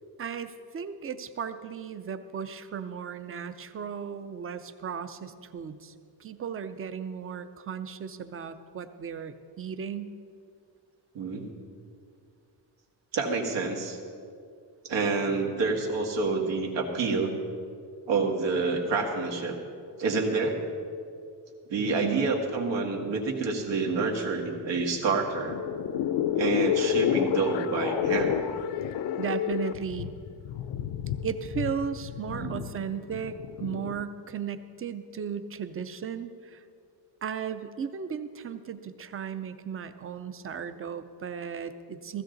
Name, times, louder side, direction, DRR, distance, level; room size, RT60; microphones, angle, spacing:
voice 1, 0.2-5.9 6.2-10.2 22.0-22.3 29.2-30.1 31.2-36.6 37.2-42.2, right 7 dB, 30° right, 11 dB, 0.6 m, -35 dB
voice 2, 13.1-14.0 14.9-17.3 18.1-19.6 20.0-20.6 21.7-25.6 26.3-28.4 32.3-32.6, right 4 dB, 90° right, 1 dB, 2.1 m, -28 dB
sound 1, 25.3-34.0, left 10 dB, 75° left, 0.6 m, -30 dB
16.0 x 15.5 x 4.0 m, 2.3 s
cardioid pair, 165°, 42 cm